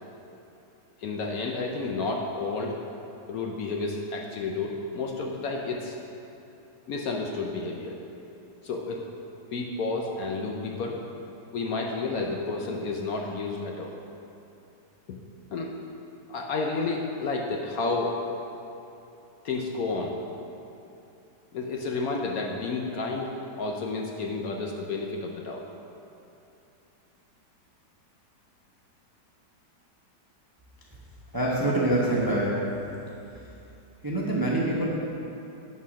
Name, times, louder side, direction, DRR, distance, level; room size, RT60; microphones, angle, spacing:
voice 1, 1.0-2.8 3.3-6.0 6.9-8.0 8.6-9.1 9.5-11.0 11.5-14.0 15.5-15.7 16.3-18.2 19.4-20.1 21.5-23.3 23.6-25.6, left 3 dB, 65° left, 0 dB, 1.0 m, -31 dB
voice 2, 31.3-32.5 34.0-34.8, right 1 dB, 20° right, -5 dB, 0.7 m, -25 dB
9.5 x 4.2 x 6.2 m, 2.8 s
omnidirectional pair, 1.9 m